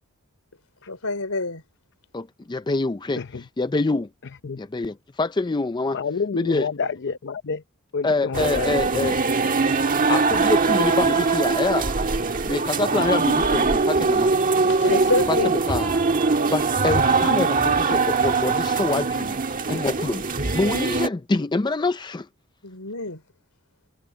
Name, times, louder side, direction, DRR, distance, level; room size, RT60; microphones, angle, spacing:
voice 1, 0.9-1.6 14.6-15.5 19.6-19.8 22.6-23.2, left 3 dB, 75° left, 4.4 m, -27 dB
voice 2, 2.1-4.1 4.6-6.0 6.3-6.7 8.0-9.2 10.1-11.9 12.5-14.3 15.3-16.0 16.5-20.2 20.5-22.3, left 3 dB, 20° left, 0.5 m, -26 dB
voice 3, 5.9-7.6 7.9-8.7, left 5 dB, 55° left, 0.7 m, -28 dB
sound 1, 8.3-21.1, right 4 dB, 40° right, 1.5 m, -22 dB
head